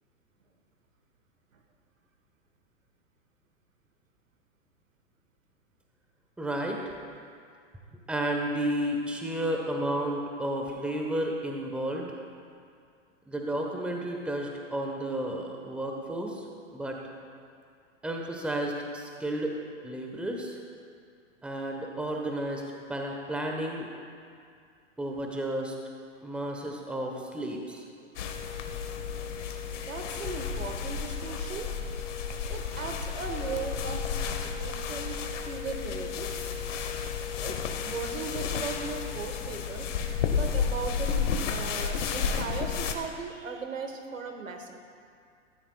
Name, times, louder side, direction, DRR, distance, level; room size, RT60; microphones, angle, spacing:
voice 1, 6.4-6.8 8.1-12.2 13.3-16.4 16.7-17.0 18.0-19.6 19.8-20.6 21.4-22.6 22.9-23.9 25.0-25.7 26.2-27.8, right 1 dB, 5° right, 1 dB, 1.1 m, -32 dB
sound 1, 28.2-42.9, left 6 dB, 65° left, 1.2 m, -32 dB
voice 2, 29.7-31.7 32.5-35.2 35.4-36.4 37.4-37.6 37.8-39.9 40.2-44.7, right 4 dB, 90° right, 4 dB, 1.5 m, -38 dB
16.5 x 13.5 x 2.3 m, 2.3 s
hypercardioid pair, 120°, 39 cm